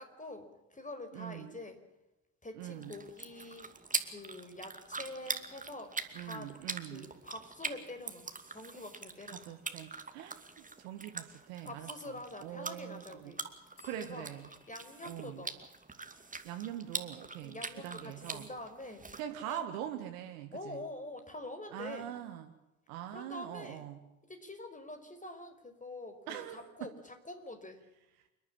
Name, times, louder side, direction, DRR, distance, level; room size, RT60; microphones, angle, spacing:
voice 1, 0.0-1.8 2.4-3.7 4.0-6.5 6.9-9.5 11.7-13.4 14.0-14.3 14.7-15.6 17.4-19.7 20.5-22.1 23.1-23.9 24.3-27.8, left 2 dB, 20° left, 7 dB, 5.0 m, -46 dB
voice 2, 1.1-1.6 2.5-2.9 6.1-7.1 9.3-12.1 12.4-13.3 13.8-14.5 15.0-15.4 16.4-17.6 17.8-18.5 19.2-20.8 21.7-22.5 22.9-24.0 26.3-26.7, right 11 dB, 75° right, 6 dB, 1.8 m, -43 dB
sound 1, 2.6-19.2, right 3 dB, 20° right, 2.5 m, -43 dB
sound 2, 13.8-17.3, left 5 dB, 70° left, 7.2 m, -66 dB
28.5 x 11.5 x 8.8 m, 0.95 s
hypercardioid pair, 55°, 41 cm